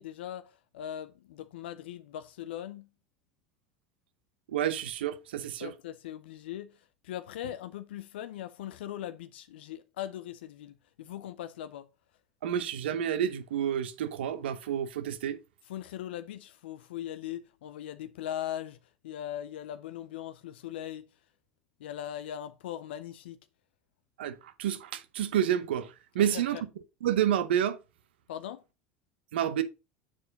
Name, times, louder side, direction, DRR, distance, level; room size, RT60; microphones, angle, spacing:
voice 1, 0.0-2.9 5.6-11.9 15.6-18.8 19.0-21.1 21.8-23.4 26.2-26.6 28.3-28.6, left 11 dB, 85° left, 0.5 m, -40 dB
voice 2, 4.5-5.7 12.4-15.4 24.2-25.9 26.1-26.6 27.0-27.8 29.3-29.6, right 10 dB, 90° right, 0.8 m, -29 dB
7.4 x 4.4 x 4.0 m
supercardioid pair, 100°, 6 cm